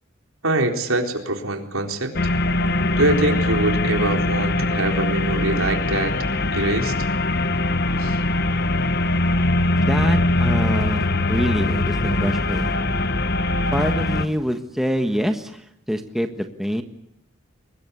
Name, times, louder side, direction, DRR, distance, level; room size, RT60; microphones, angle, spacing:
voice 1, 0.4-2.1 3.0-6.1 6.5-6.9 8.0-8.2, right 2 dB, 90° right, 3 dB, 4.0 m, -23 dB
sound 1, 2.1-14.2, left 2 dB, 50° left, 1.1 m, -22 dB
voice 2, 9.7-12.7 13.7-16.8, equal, ahead, 6 dB, 1.4 m, -25 dB
23.5 x 20.5 x 8.3 m, 0.77 s
head